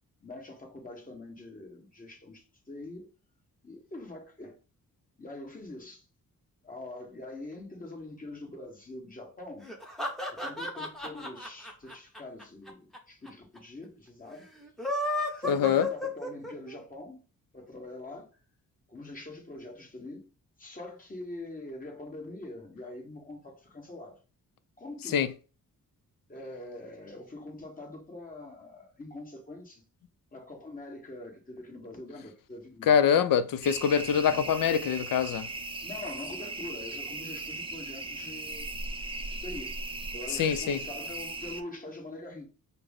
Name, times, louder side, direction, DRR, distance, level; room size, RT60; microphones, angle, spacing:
voice 1, 0.2-3.1 3.6-4.6 5.2-6.1 6.6-9.7 10.3-14.5 15.4-17.2 17.5-18.3 18.9-20.3 20.6-24.2 24.8-25.3 26.3-29.8 30.3-33.2 35.8-38.7 39.0-42.5, left 2 dB, 25° left, 1.3 m, -44 dB
sound 1, 9.6-13.0 13.3-13.4 13.6-13.7 14.6-16.8, left 1 dB, ahead, 0.8 m, -33 dB
voice 2, 15.5-15.9 25.1-25.3 32.9-35.5 40.3-40.8, left 8 dB, 75° left, 0.5 m, -24 dB
sound 2, 33.6-41.6, right 2 dB, 15° right, 0.4 m, -38 dB
5.7 x 2.0 x 3.5 m
cardioid pair, 105°, 34 cm